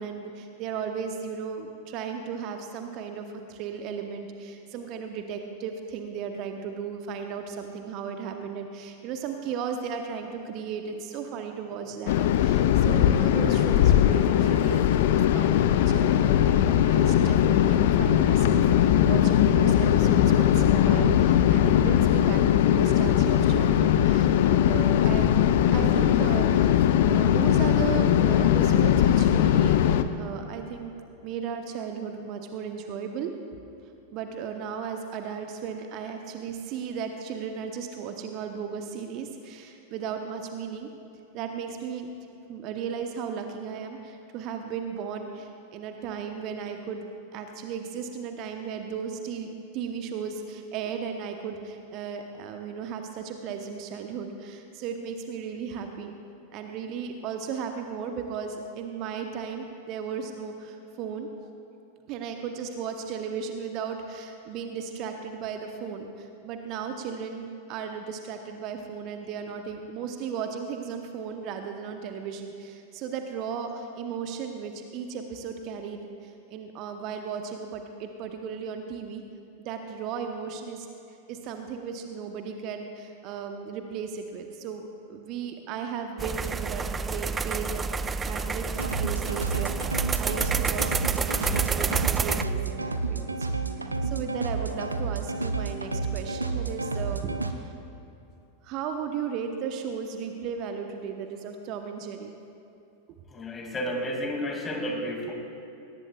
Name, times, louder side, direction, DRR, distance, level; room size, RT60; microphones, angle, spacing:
voice 1, 0.0-25.4 25.7-26.7 27.0-30.9 31.2-33.6 34.1-40.9 41.3-56.1 56.5-61.5 62.1-79.2 79.6-80.9 81.3-97.7 98.6-102.4, right 6 dB, 40° right, 5 dB, 1.0 m, -35 dB
sound 1, 12.1-30.0, left 10 dB, 55° left, 0.6 m, -20 dB
sound 2, 86.2-92.4, right 5 dB, 15° right, 0.4 m, -29 dB
sound 3, 88.8-97.5, right 3 dB, 80° right, 0.7 m, -30 dB
voice 2, 103.3-105.3, equal, 20° left, 2 dB, 2.4 m, -31 dB
21.0 x 18.5 x 2.4 m, 2.8 s
figure-of-eight pair, 90°, 0 cm